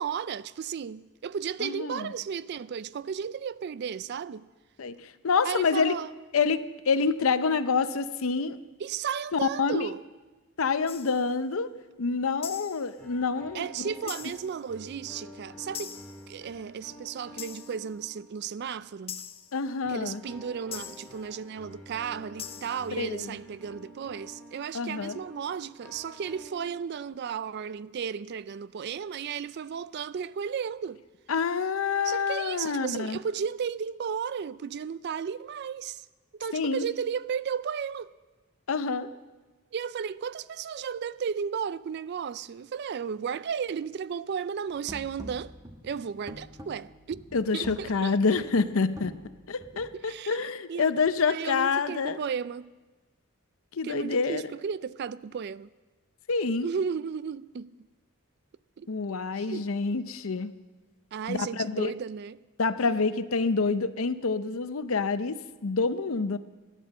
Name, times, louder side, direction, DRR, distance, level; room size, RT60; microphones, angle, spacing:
voice 1, 0.0-4.5 5.4-6.1 8.8-10.0 13.5-16.0 16.3-19.2 19.9-31.0 32.0-36.0 36.4-38.1 39.7-45.5 45.8-47.3 47.5-48.2 50.0-50.4 50.7-50.8 51.3-52.7 53.8-55.7 56.6-57.7 58.8-58.9 59.3-59.7 61.1-62.4, right 7 dB, 50° right, 0.3 m, -34 dB
voice 2, 1.6-2.1 4.8-5.9 6.3-8.6 9.3-9.9 10.6-11.7 12.0-13.9 19.5-20.2 23.0-23.4 24.7-25.2 31.3-33.2 36.5-36.9 38.7-39.1 47.3-49.1 49.5-52.2 53.7-54.5 56.3-56.7 58.9-60.5 61.3-61.9 62.6-66.4, left 4 dB, 75° left, 0.6 m, -27 dB
sound 1, 10.9-11.3 12.4-12.9 14.1-14.6 15.7-16.3 17.4-17.9 19.1-19.6 20.7-21.2 22.4-22.9, left 8 dB, 25° left, 0.6 m, -41 dB
sound 2, 13.0-18.8 19.8-27.2, equal, 5° left, 2.1 m, -49 dB
sound 3, 44.7-50.0, equal, 15° right, 1.2 m, -46 dB
14.0 x 10.0 x 7.4 m
head